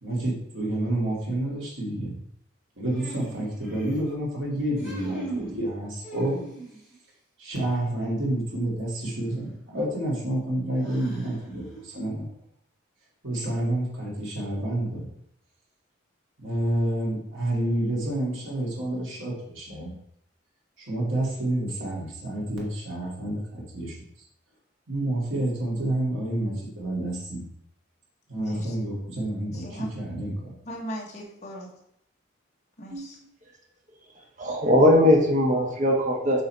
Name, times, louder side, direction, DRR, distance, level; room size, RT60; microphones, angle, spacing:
voice 1, 0.0-2.2 2.8-6.4 7.4-12.3 13.2-15.1 16.4-19.9 20.8-24.0 24.9-27.4 28.3-30.5, right 1 dB, 75° right, -4 dB, 2.5 m, -29 dB
sound 1, 2.9-4.1 4.7-5.6 6.0-6.9 8.9-9.0 10.8-11.7, right 2 dB, ahead, 2.6 m, -39 dB
voice 2, 28.3-28.8 29.5-29.9 30.6-31.7 32.8-33.2, equal, 35° left, -1 dB, 1.3 m, -37 dB
voice 3, 34.4-36.4, left 1 dB, 40° right, 1 dB, 1.2 m, -20 dB
6.6 x 4.0 x 4.4 m, 0.72 s
head